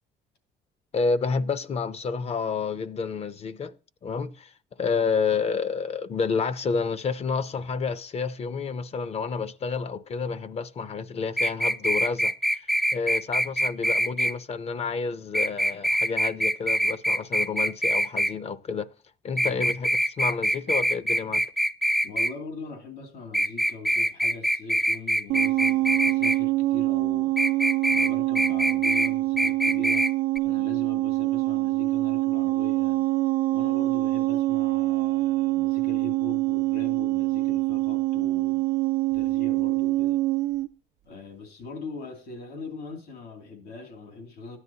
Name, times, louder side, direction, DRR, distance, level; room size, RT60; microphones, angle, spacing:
voice 1, 0.9-3.7 4.0-4.5 4.8-12.6 12.9-18.9 19.2-21.4, left 5 dB, 40° left, 0.6 m, -29 dB
sound 1, 11.4-14.3 15.3-18.3 19.4-22.3 23.3-26.4 27.4-28.1 28.4-29.1 29.4-30.1 30.4-30.5, equal, ahead, 0.4 m, -24 dB
voice 2, 19.4-19.8 22.0-27.3 27.9-30.1 30.4-33.0 33.5-38.7 39.1-40.2 41.0-44.6, left 3 dB, 75° left, 2.6 m, -41 dB
sound 2, 25.3-40.7, right 19 dB, 80° right, 0.5 m, -25 dB
13.0 x 9.7 x 2.8 m
cardioid pair, 110°, 17 cm